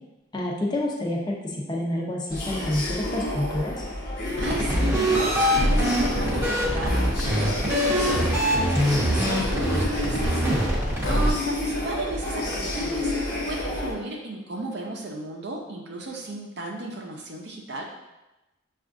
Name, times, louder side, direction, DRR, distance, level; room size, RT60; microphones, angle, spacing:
voice 1, 0.3-3.8, left 1 dB, 20° left, -2 dB, 0.6 m, -28 dB
sound 1, 2.3-13.9, left 1 dB, 50° left, 0.9 m, -30 dB
sound 2, 4.4-11.3, equal, 15° right, 0.7 m, -23 dB
voice 2, 4.4-10.5 11.1-17.8, right 2 dB, 55° right, -1 dB, 0.6 m, -34 dB
sound 3, 8.1-8.4 9.3-9.6 11.0-11.3 12.5-12.7, left 3 dB, 70° left, 0.4 m, -35 dB
6.8 x 2.4 x 2.5 m, 1.0 s
head